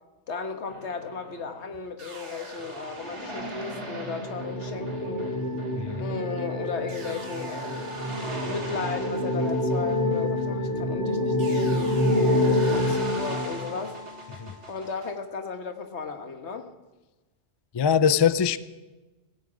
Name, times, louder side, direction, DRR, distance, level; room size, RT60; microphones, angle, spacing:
voice 1, 0.3-5.3 6.0-8.2 8.4-14.0 14.7-16.7, left 5 dB, 75° left, 7 dB, 1.6 m, -35 dB
sound 1, 0.7-10.8 11.4-15.1, right 1 dB, 90° right, 3.1 m, -41 dB
sound 2, 3.5-14.2, left 1 dB, 15° left, 1.8 m, -27 dB
voice 2, 17.7-18.6, left 7 dB, 40° left, 15 dB, 0.4 m, -22 dB
17.0 x 16.0 x 5.0 m, 1.2 s
omnidirectional pair, 1.2 m